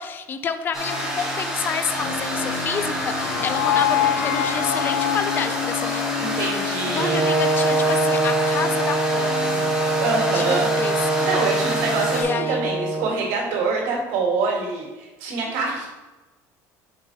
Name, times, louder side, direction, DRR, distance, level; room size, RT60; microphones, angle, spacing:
voice 1, 0.0-6.1 6.4-9.7 10.3-11.1 12.1-12.7, left 6 dB, 30° left, 10 dB, 0.4 m, -29 dB
sound 1, 0.7-12.2, equal, 5° right, 1.9 m, -28 dB
sound 2, 1.9-8.1, left 11 dB, 85° left, 0.6 m, -26 dB
voice 2, 6.2-7.2 10.0-10.7 11.2-15.9, right 4 dB, 85° right, -2 dB, 2.3 m, -25 dB
Brass instrument, 7.0-13.1, right 2 dB, 55° right, 1.8 m, -23 dB
5.9 x 4.6 x 4.7 m, 1.1 s
cardioid pair, 155°, 7 cm